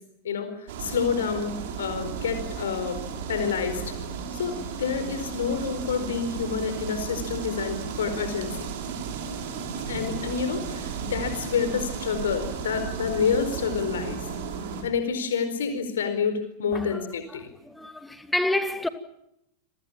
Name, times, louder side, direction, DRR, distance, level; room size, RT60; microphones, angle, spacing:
voice 1, 0.2-3.0 3.3-3.9 4.3-8.5 9.9-14.2 14.8-17.5, left 6 dB, 65° left, 4.5 m, -28 dB
sound 1, 0.7-14.8, right 6 dB, 55° right, 6.1 m, -34 dB
voice 2, 16.7-17.0 17.3-18.9, left 1 dB, 5° left, 2.5 m, -29 dB
30.0 x 23.5 x 7.4 m
figure-of-eight pair, 90°, 0 cm